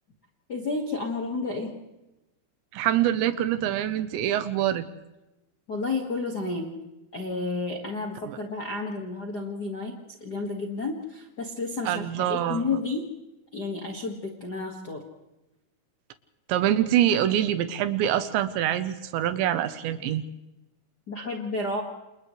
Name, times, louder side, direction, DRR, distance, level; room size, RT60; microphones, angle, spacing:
voice 1, 0.5-1.7 5.7-6.7 7.1-13.1 13.5-15.0 21.1-21.8, left 3 dB, 75° left, 0 dB, 0.9 m, -31 dB
voice 2, 2.7-4.8 8.3-8.4 11.9-12.6 16.5-20.2, right 11 dB, 85° right, 10 dB, 3.2 m, -25 dB
29.0 x 28.5 x 3.3 m, 0.99 s
omnidirectional pair, 5.3 m